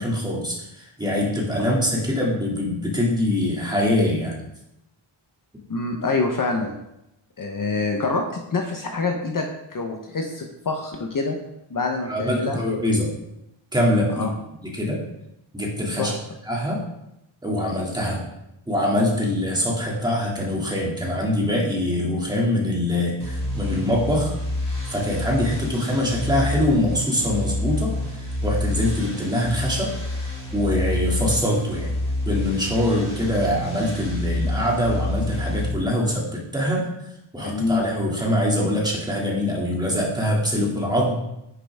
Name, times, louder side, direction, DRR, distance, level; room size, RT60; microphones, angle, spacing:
voice 1, 0.0-4.4 12.1-13.1 13.7-14.3 14.6-15.0 15.5-16.1 16.5-16.8 17.4-18.2 18.7-24.3 24.9-29.9 30.5-31.9 32.2-36.9 37.3-41.2, left 1 dB, 10° right, -3 dB, 2.4 m, -23 dB
voice 2, 5.7-6.7 7.4-11.3 11.7-12.6 14.1-14.3 16.0-16.2 37.4-37.8, left 3 dB, 40° left, 3 dB, 1.0 m, -26 dB
sound 1, 23.2-35.7, left 1 dB, 10° left, 2.6 m, -28 dB
10.0 x 9.6 x 3.6 m, 0.84 s
wide cardioid pair, 170°, 50 cm